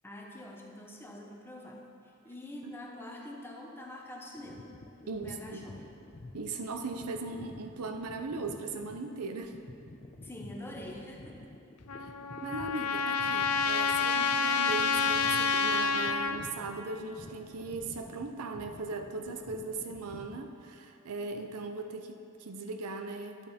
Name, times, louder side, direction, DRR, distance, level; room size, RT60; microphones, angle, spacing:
voice 1, 0.0-4.7 5.0-5.8 10.2-11.4, left 1 dB, 10° left, -1 dB, 1.0 m, -45 dB
sound 1, 4.4-20.5, left 2 dB, 30° left, 0.6 m, -50 dB
voice 2, 5.1-5.7 6.3-9.6 12.0-12.1 12.4-23.5, right 3 dB, 80° right, 6 dB, 0.6 m, -38 dB
Trumpet, 11.9-16.4, left 5 dB, 90° left, 0.5 m, -28 dB
10.5 x 8.3 x 4.3 m, 2.5 s
head